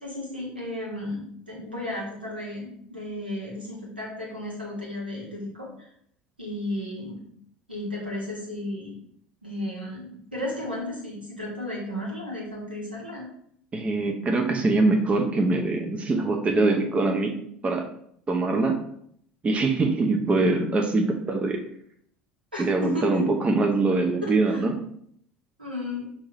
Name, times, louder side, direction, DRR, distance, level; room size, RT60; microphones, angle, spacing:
voice 1, 0.0-5.9 6.4-7.2 7.7-9.0 9.4-13.3 22.5-23.2 24.2-24.6 25.6-26.1, left 1 dB, 90° right, -4 dB, 1.3 m, -34 dB
voice 2, 13.7-17.3 17.6-17.9 18.3-18.8 19.4-21.6 22.6-24.7, right 3 dB, 25° right, 4 dB, 0.6 m, -23 dB
5.9 x 2.7 x 3.0 m, 0.68 s
figure-of-eight pair, 70°, 5 cm